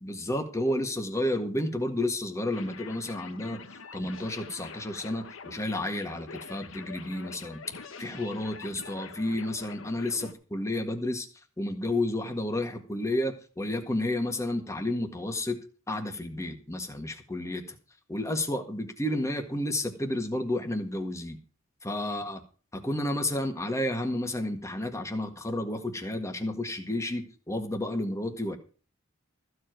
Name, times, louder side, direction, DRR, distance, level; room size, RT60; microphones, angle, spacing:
voice 1, 0.0-3.6 3.9-7.6 8.0-11.3 11.6-15.6 15.9-17.6 18.1-21.4 21.8-22.4 22.7-28.6, left 1 dB, 15° left, 5 dB, 1.7 m, -31 dB
sound 1, 2.5-10.3, left 4 dB, 75° left, 1.3 m, -45 dB
14.5 x 4.9 x 9.2 m, 0.38 s
head